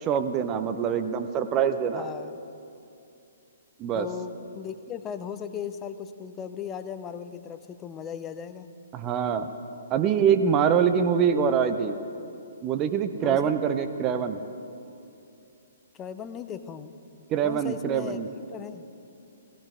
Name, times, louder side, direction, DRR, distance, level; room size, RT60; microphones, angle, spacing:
voice 1, 0.0-2.1 3.8-4.1 8.9-9.5 9.9-12.0 12.6-14.4 17.3-18.3, right 7 dB, 25° right, 9 dB, 0.7 m, -24 dB
voice 2, 1.9-2.4 3.9-8.7 13.2-13.5 15.9-17.0 17.4-18.2 18.5-18.8, left 8 dB, 20° left, 10 dB, 0.6 m, -37 dB
18.0 x 16.0 x 3.7 m, 2.6 s
figure-of-eight pair, 125°, 0 cm